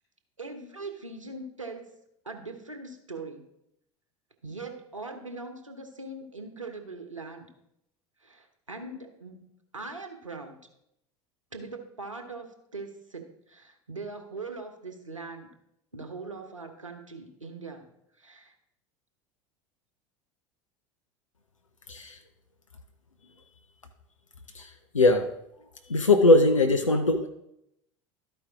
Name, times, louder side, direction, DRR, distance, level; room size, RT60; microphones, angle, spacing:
voice 1, 0.4-1.8 2.2-3.5 4.4-7.5 8.2-9.4 9.7-10.6 11.5-15.5 15.9-17.9 18.2-18.6, right 3 dB, 90° right, 6 dB, 1.0 m, -41 dB
voice 2, 24.9-25.3 25.9-27.3, left 2 dB, 90° left, 6 dB, 0.5 m, -20 dB
12.5 x 5.1 x 3.6 m, 0.80 s
figure-of-eight pair, 75°, 16 cm